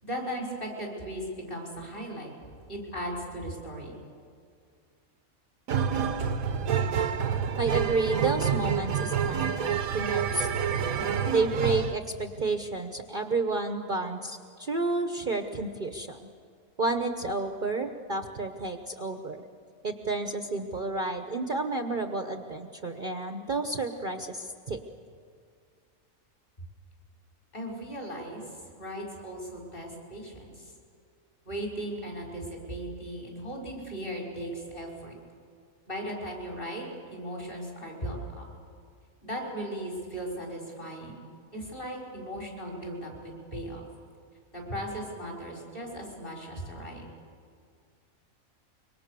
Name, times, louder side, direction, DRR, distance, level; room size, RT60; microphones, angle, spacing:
voice 1, 0.0-2.3 2.7-4.0 27.5-28.4 28.8-30.7 31.5-35.2 35.9-38.4 39.2-41.3 41.5-43.8 44.5-47.0, equal, 40° left, -1 dB, 6.3 m, -37 dB
sound 1, 5.7-12.0, right 7 dB, 85° right, 1.5 m, -28 dB
voice 2, 7.6-10.5 11.3-16.3 16.8-19.4 19.8-24.8, right 3 dB, 40° right, 6 dB, 1.1 m, -31 dB
25.5 x 24.0 x 6.9 m, 2.2 s
omnidirectional pair, 1.4 m